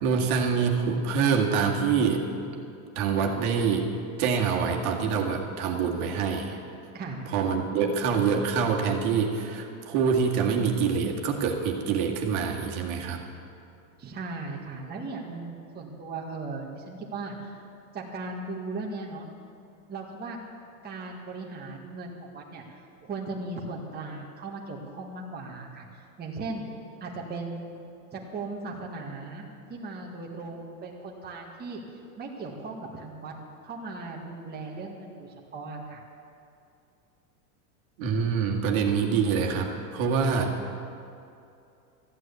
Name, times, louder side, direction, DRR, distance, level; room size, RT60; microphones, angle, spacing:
voice 1, 0.0-2.3 3.0-3.9 4.2-6.6 7.3-13.2 38.0-40.9, right 6 dB, 65° right, 0 dB, 2.0 m, -25 dB
voice 2, 6.9-7.3 14.0-17.6 17.9-19.3 19.9-20.4 20.8-26.7 27.0-27.8 28.1-31.8 32.2-33.3 33.6-36.0, right 3 dB, 20° right, -1 dB, 1.7 m, -37 dB
14.0 x 9.2 x 8.2 m, 2.6 s
supercardioid pair, 135°, 46 cm